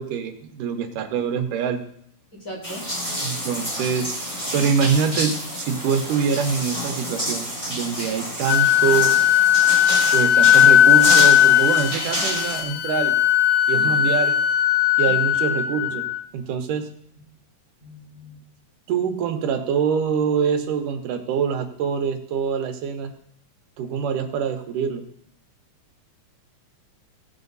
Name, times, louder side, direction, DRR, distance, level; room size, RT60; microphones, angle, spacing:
voice 1, 0.0-1.8 3.2-9.1 10.1-13.2 13.7-14.4 15.0-16.1 16.3-16.9 18.9-23.1 23.8-25.0, right 6 dB, 90° right, 6 dB, 2.7 m, -25 dB
voice 2, 2.3-2.9 13.7-14.1 15.1-15.2 17.8-18.4, equal, 30° left, -3 dB, 2.3 m, -38 dB
sound 1, 2.6-12.6, equal, 10° left, 2.4 m, -29 dB
Wind instrument woodwind instrument, 8.5-16.2, left 11 dB, 80° left, 1.6 m, -17 dB
17.0 x 6.9 x 4.0 m, 0.63 s
omnidirectional pair, 3.6 m